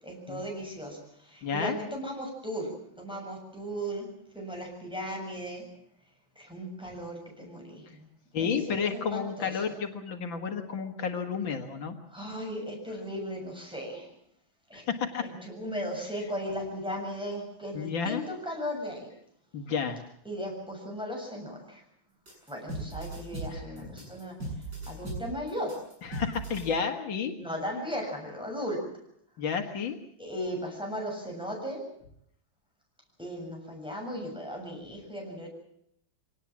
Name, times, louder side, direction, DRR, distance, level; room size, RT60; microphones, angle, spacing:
voice 1, 0.0-4.1 4.3-5.7 6.4-8.1 8.4-9.7 12.1-14.1 14.7-14.8 15.2-19.1 20.3-21.8 22.5-24.4 24.9-25.8 27.4-28.9 30.2-31.9 33.2-35.5, equal, ahead, 0 dB, 7.3 m, -36 dB
voice 2, 1.4-1.8 8.3-12.0 14.7-15.2 17.7-18.2 19.5-20.0 23.5-24.1 26.0-27.3 29.4-30.0, left 6 dB, 80° left, 5 dB, 2.5 m, -31 dB
sound 1, 22.3-26.7, right 2 dB, 60° right, 8.7 m, -38 dB
25.0 x 18.5 x 7.4 m, 0.70 s
omnidirectional pair, 2.1 m